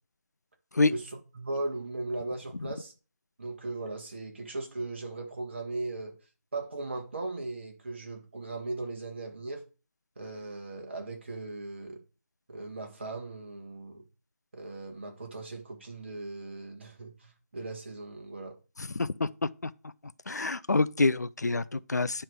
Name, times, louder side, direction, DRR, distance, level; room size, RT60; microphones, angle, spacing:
voice 1, 1.3-2.9 3.4-6.1 6.5-9.6 10.1-12.0 12.5-14.0 14.5-18.6, right 2 dB, 40° right, 1.8 m, -38 dB
voice 2, 18.9-19.3 20.3-22.2, left 3 dB, 70° left, 0.5 m, -26 dB
9.7 x 3.3 x 6.2 m
figure-of-eight pair, 165°, 9 cm